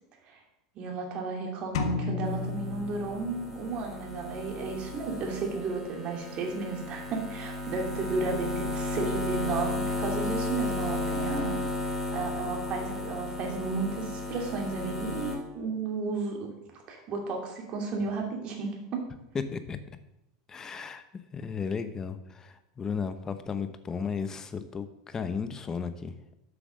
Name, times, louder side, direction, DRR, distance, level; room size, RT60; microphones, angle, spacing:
voice 1, 0.7-11.6 12.1-16.5 16.9-19.0, right 4 dB, 40° right, 1 dB, 2.5 m, -33 dB
sound 1, 1.7-3.7, left 4 dB, 80° left, 1.0 m, -33 dB
sound 2, 2.2-15.4, left 2 dB, 5° right, 3.0 m, -34 dB
voice 2, 20.5-21.0 21.3-26.1, left 6 dB, 20° left, 11 dB, 0.8 m, -34 dB
8.0 x 5.8 x 6.3 m, 0.89 s
supercardioid pair, 130°, 3 cm